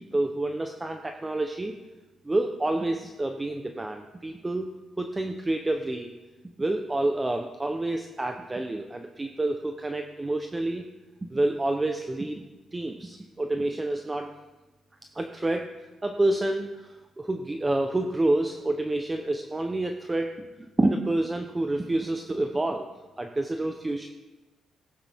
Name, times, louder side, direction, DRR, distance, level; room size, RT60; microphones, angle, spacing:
voice 1, 0.0-1.8 2.2-4.7 5.0-6.1 6.6-10.9 11.3-12.4 12.7-14.3 15.1-15.7 16.0-20.3 20.6-22.9 23.2-24.1, right 2 dB, 20° right, 5 dB, 0.8 m, -28 dB
16.5 x 8.7 x 3.6 m, 1.2 s
cardioid pair, 90°, 0 cm